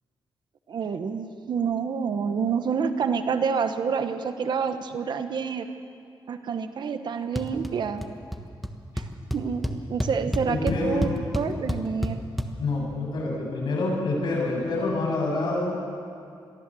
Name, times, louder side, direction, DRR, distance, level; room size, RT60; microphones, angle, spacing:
voice 1, 0.7-5.7 6.3-8.0 9.0-9.1 9.3-12.2, right 6 dB, 60° right, 9 dB, 1.2 m, -28 dB
sound 1, 7.4-7.7 8.0-8.4 8.6-8.7 9.0-12.5, equal, ahead, 1.3 m, -28 dB
voice 2, 10.5-11.1 12.6-15.8, left 2 dB, 60° left, -3 dB, 7.6 m, -27 dB
23.0 x 15.5 x 7.8 m, 2.5 s
cardioid pair, 125°, 9 cm